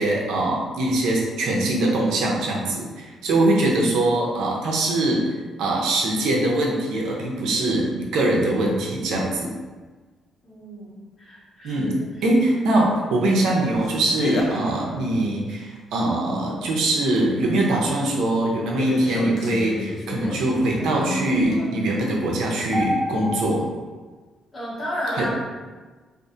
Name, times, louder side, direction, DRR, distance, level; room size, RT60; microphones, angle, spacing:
voice 1, 0.0-5.3 5.6-9.5 11.6-23.7 25.1-25.3, right 1 dB, 85° right, -2 dB, 0.5 m, -22 dB
voice 2, 10.4-11.9 24.5-25.4, equal, 35° left, -8 dB, 1.2 m, -32 dB
sound 1, 13.7-15.1 18.8-21.9 22.7-23.7, left 1 dB, 60° left, 0.4 m, -30 dB
2.6 x 2.5 x 2.5 m, 1.3 s
cardioid pair, 90°, 0 cm